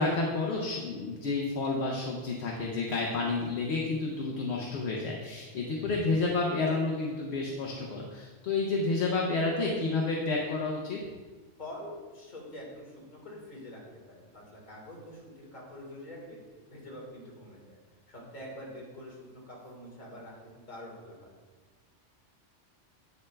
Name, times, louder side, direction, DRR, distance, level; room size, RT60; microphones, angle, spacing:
voice 1, 0.0-11.0, left 3 dB, 65° left, -1 dB, 0.9 m, -30 dB
voice 2, 11.6-13.8 14.1-16.4 16.7-17.8 18.1-21.3, left 1 dB, 40° left, -4 dB, 1.7 m, -45 dB
7.8 x 6.9 x 2.2 m, 1.4 s
omnidirectional pair, 1.3 m